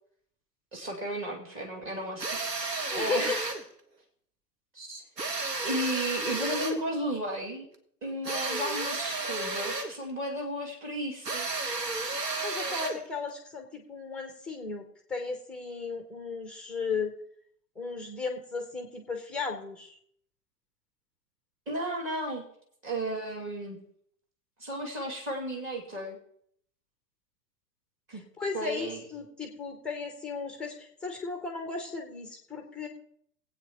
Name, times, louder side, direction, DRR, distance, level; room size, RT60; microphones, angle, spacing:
voice 1, 0.7-3.5 4.7-7.7 8.0-11.5 21.7-22.5 22.8-23.8 24.6-26.2 28.1-28.2 28.5-29.0, right 1 dB, 25° right, -1 dB, 2.4 m, -34 dB
sound 1, 2.2-3.7 5.2-6.8 8.2-10.0 11.2-13.1, right 3 dB, 80° right, 1.2 m, -32 dB
voice 2, 2.9-3.4 12.4-17.1 17.8-20.0 28.4-32.9, left 4 dB, ahead, 5 dB, 0.4 m, -35 dB
19.5 x 8.4 x 2.9 m, 0.67 s
figure-of-eight pair, 100°, 48 cm